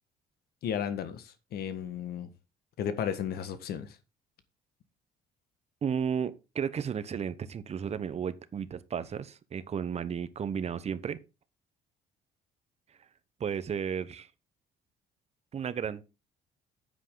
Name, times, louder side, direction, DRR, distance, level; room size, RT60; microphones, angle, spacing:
voice 1, 0.6-2.3 2.8-4.0, left 8 dB, 65° left, 1.7 m, -34 dB
voice 2, 5.8-11.2 13.4-14.3 15.5-16.0, right 7 dB, 40° right, 0.9 m, -33 dB
9.8 x 8.3 x 3.9 m
cardioid pair, 110°, 17 cm